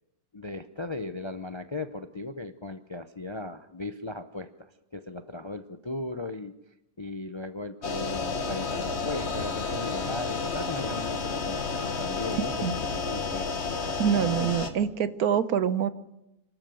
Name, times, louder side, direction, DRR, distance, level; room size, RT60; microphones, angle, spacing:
voice 1, 0.3-6.5 7.0-13.5, left 2 dB, 30° left, 9 dB, 0.5 m, -37 dB
sound 1, 7.8-14.7, left 4 dB, 45° left, 1.7 m, -31 dB
voice 2, 14.0-15.9, right 8 dB, 80° right, 13 dB, 1.4 m, -25 dB
27.0 x 12.5 x 7.7 m, 0.89 s
omnidirectional pair, 1.6 m